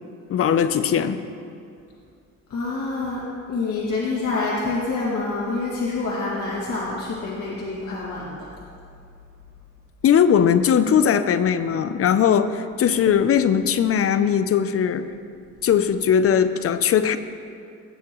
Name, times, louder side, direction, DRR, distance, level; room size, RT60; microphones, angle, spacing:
voice 1, 0.3-1.2 10.0-15.1 15.6-17.2, left 8 dB, 50° left, 12 dB, 0.6 m, -19 dB
voice 2, 2.5-3.2 3.5-8.5, left 3 dB, 65° left, -7 dB, 2.2 m, -27 dB
17.0 x 7.1 x 3.1 m, 2.4 s
cardioid pair, 90°, 30 cm